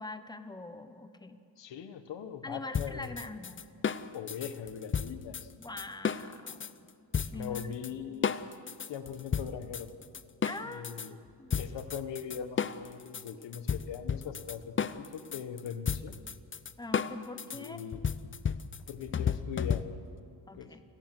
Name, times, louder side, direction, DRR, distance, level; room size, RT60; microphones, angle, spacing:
voice 1, 0.0-1.4 2.4-3.6 5.6-6.8 7.3-8.0 10.4-11.6 16.8-17.8 20.5-20.8, left 2 dB, 10° left, 10 dB, 1.1 m, -43 dB
voice 2, 1.6-3.1 4.1-5.5 7.3-8.5 8.9-9.9 10.6-11.2 11.6-16.1 17.5-18.0 18.9-19.9 20.5-20.7, left 8 dB, 85° left, 10 dB, 1.5 m, -41 dB
sound 1, 2.7-6.7 7.1-7.9 8.2-11.1 11.5-20.2, left 7 dB, 30° left, 0.6 m, -33 dB
29.5 x 17.5 x 6.2 m, 2.6 s
wide cardioid pair, 135°, 42 cm